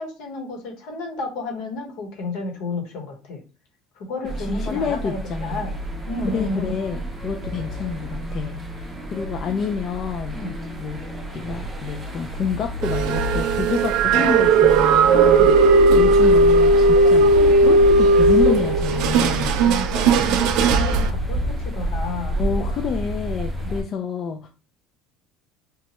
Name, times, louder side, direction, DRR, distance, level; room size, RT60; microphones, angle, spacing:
voice 1, 0.0-3.4 4.0-5.8 6.1-6.7 10.3-10.5 15.3-15.6 19.3-22.3, left 2 dB, 70° left, 1 dB, 1.1 m, -31 dB
sound 1, 4.3-23.8, right 1 dB, 15° right, 0.6 m, -28 dB
voice 2, 4.4-5.6 6.3-10.4 10.8-11.0 11.3-15.5 15.9-19.6 22.3-24.5, left 5 dB, 35° left, 4 dB, 0.3 m, -28 dB
sound 2, 12.8-21.1, right 3 dB, 60° right, 0.3 m, -16 dB
2.9 x 2.2 x 2.9 m, 0.34 s
cardioid pair, 145°, 0 cm